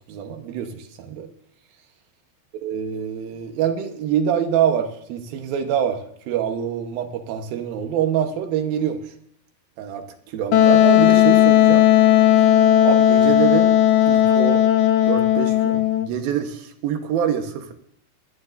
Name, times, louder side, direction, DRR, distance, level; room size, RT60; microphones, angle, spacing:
voice 1, 0.1-1.3 2.6-9.1 9.8-11.9 12.8-13.7 14.1-14.6 15.1-17.7, right 9 dB, 75° right, 5 dB, 2.9 m, -25 dB
Wind instrument woodwind instrument, 10.5-16.1, left 11 dB, 75° left, 2.2 m, -15 dB
21.5 x 11.5 x 2.6 m, 0.70 s
omnidirectional pair, 4.4 m